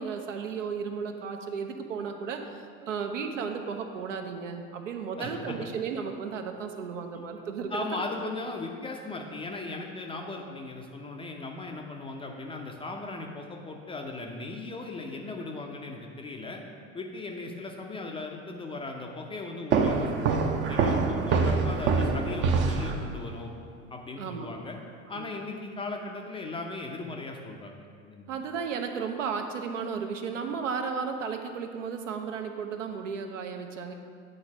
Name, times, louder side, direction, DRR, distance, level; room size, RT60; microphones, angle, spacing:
voice 1, 0.0-7.9 20.9-21.1 24.2-24.5 25.1-25.3 28.3-33.9, right 6 dB, 65° right, 5 dB, 0.8 m, -34 dB
voice 2, 5.2-5.7 7.4-16.6 16.9-23.5 23.9-24.8 25.1-28.3, left 3 dB, 15° left, 2 dB, 0.6 m, -38 dB
sound 1, 19.7-23.4, right 4 dB, 30° right, 0.7 m, -25 dB
8.7 x 4.0 x 5.9 m, 2.1 s
figure-of-eight pair, 75°, 40 cm